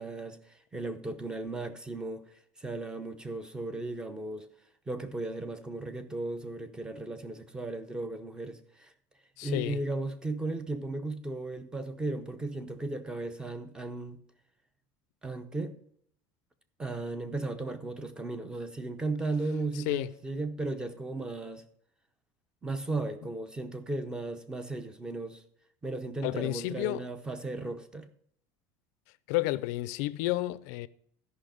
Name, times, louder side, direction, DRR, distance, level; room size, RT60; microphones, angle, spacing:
voice 1, 0.0-2.2 2.6-4.5 4.9-8.9 9.4-14.2 15.2-15.8 16.8-21.6 22.6-25.4 25.8-28.1, right 2 dB, 10° right, 0.7 m, -36 dB
voice 2, 9.4-9.8 19.9-20.1 26.2-27.0 29.3-30.9, left 18 dB, 75° left, 0.5 m, -31 dB
13.0 x 5.7 x 5.0 m
cardioid pair, 160°, 9 cm